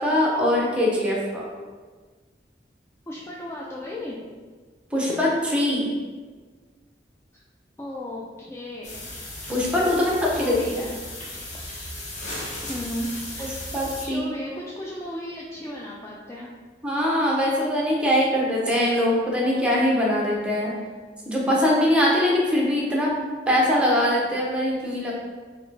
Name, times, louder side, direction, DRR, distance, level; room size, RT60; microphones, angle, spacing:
voice 1, 0.0-1.5 4.9-5.9 9.5-10.6 13.4-13.5 13.7-14.3 16.8-20.7 21.2-23.1 23.5-25.1, left 1 dB, 5° right, -4 dB, 0.8 m, -22 dB
voice 2, 3.1-4.3 7.3-7.4 7.8-9.0 9.9-10.1 10.3-10.9 12.6-13.6 14.0-16.5, left 1 dB, 15° left, -4 dB, 0.3 m, -35 dB
sound 1, 8.8-14.1, left 1 dB, 45° left, 1.0 m, -36 dB
3.7 x 3.3 x 3.3 m, 1.4 s
head